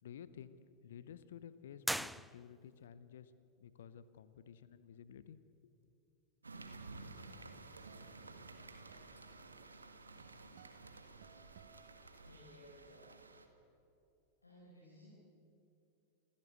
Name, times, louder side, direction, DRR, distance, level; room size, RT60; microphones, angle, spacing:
voice 1, 0.0-3.3 3.6-5.4 5.6-5.8, left 8 dB, 60° left, 15 dB, 0.9 m, -53 dB
sound 1, 1.8-2.9, equal, ahead, 0.4 m, -40 dB
sound 2, 6.4-13.5, right 3 dB, 75° right, 1.8 m, -53 dB
sound 3, 7.9-12.7, right 8 dB, 55° right, 1.2 m, -65 dB
voice 2, 12.2-13.2 14.4-15.1, left 1 dB, 80° left, -5 dB, 5.0 m, -59 dB
27.0 x 14.5 x 8.0 m, 2.8 s
figure-of-eight pair, 90°, 0 cm